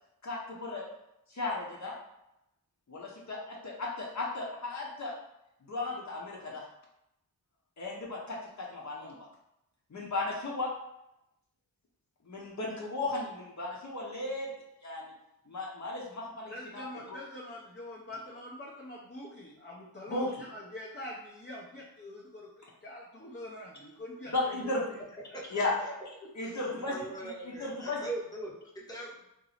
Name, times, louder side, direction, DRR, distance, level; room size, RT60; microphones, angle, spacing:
voice 1, 0.2-0.9 1.3-1.9 2.9-5.1 5.6-6.6 7.8-9.2 9.9-10.7 12.2-14.5 14.8-15.1 15.5-17.2 20.1-20.3 24.3-24.8 25.5-25.7 26.3-28.0, left 2 dB, 50° left, -3 dB, 0.9 m, -35 dB
voice 2, 16.5-24.3 24.6-24.7 26.2-26.3, left 1 dB, 30° left, -4 dB, 0.6 m, -44 dB
voice 3, 25.3-25.9 26.4-29.2, right 2 dB, 10° left, -5 dB, 1.0 m, -41 dB
2.9 x 2.6 x 4.0 m, 0.85 s
wide cardioid pair, 100°, 36 cm